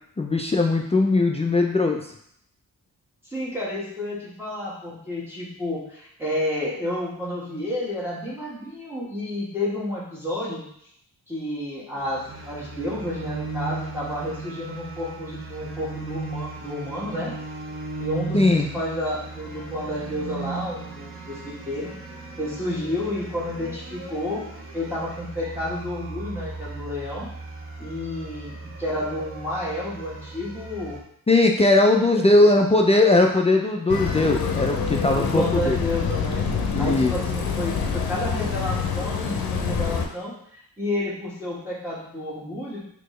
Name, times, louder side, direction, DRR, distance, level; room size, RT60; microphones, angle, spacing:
voice 1, 0.2-2.1 18.3-18.7 31.3-35.8 36.7-37.1, left 2 dB, 20° left, 1 dB, 0.3 m, -19 dB
voice 2, 3.2-10.6 11.3-17.3 18.0-21.9 22.4-24.4 24.7-27.3 27.8-28.5 28.8-31.0 32.1-32.2 35.1-36.5 36.8-42.8, left 1 dB, 5° right, -8 dB, 1.3 m, -30 dB
sound 1, 12.0-31.0, right 3 dB, 35° right, 0.7 m, -37 dB
sound 2, 33.9-40.1, left 5 dB, 75° left, 0.6 m, -26 dB
4.2 x 2.8 x 3.1 m, 0.70 s
cardioid pair, 75°, 36 cm